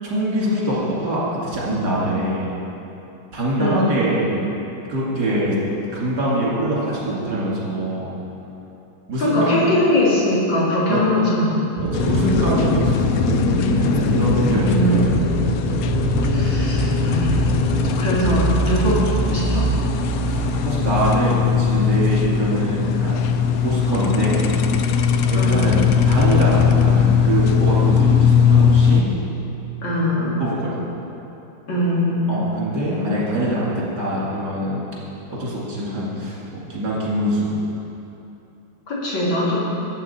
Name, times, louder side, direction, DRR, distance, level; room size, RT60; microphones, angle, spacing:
voice 1, 0.0-2.5 3.3-4.3 4.9-5.6 5.9-8.1 9.1-9.6 10.9-11.0 11.8-15.2 20.2-23.3 23.6-24.5 25.3-29.1 30.4-30.8 32.3-34.9 35.3-37.5, right 1 dB, 60° right, -6 dB, 2.8 m, -23 dB
voice 2, 3.6-3.9 9.2-11.7 12.0-12.2 14.7-15.4 16.2-17.5 18.0-19.7 25.3-25.6 29.8-30.5 31.7-32.4 32.9-33.2 38.9-39.6, left 1 dB, 90° left, -6 dB, 2.9 m, -21 dB
sound 1, 11.8-21.0, right 2 dB, 25° right, 0.9 m, -23 dB
sound 2, 11.9-29.0, left 7 dB, 75° left, 0.8 m, -20 dB
12.0 x 8.1 x 4.3 m, 2.9 s
omnidirectional pair, 2.0 m